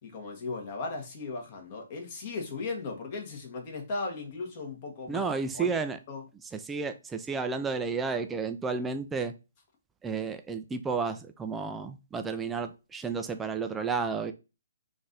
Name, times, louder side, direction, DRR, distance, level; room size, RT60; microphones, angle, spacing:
voice 1, 0.0-5.2 5.5-6.2, left 3 dB, 35° left, 1.3 m, -37 dB
voice 2, 5.1-6.0 6.7-9.3 10.0-14.3, right 5 dB, 10° right, 0.4 m, -32 dB
3.8 x 2.6 x 3.8 m
figure-of-eight pair, 135°, 0 cm